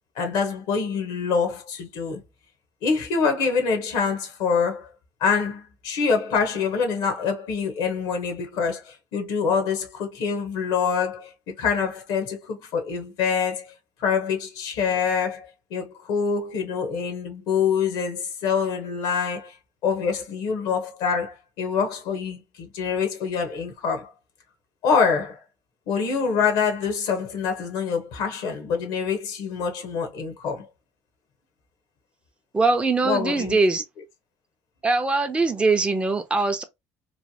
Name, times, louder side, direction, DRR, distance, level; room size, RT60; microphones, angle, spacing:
voice 1, 0.1-2.2 2.8-4.9 5.2-11.3 11.6-13.7 14.0-19.6 19.8-24.1 24.8-25.4 25.9-30.7 33.0-33.6, left 6 dB, 75° left, 0.9 m, -25 dB
voice 2, 32.5-33.8 34.8-36.6, right 3 dB, 15° right, 0.5 m, -22 dB
3.2 x 2.1 x 2.7 m
supercardioid pair, 90°, 8 cm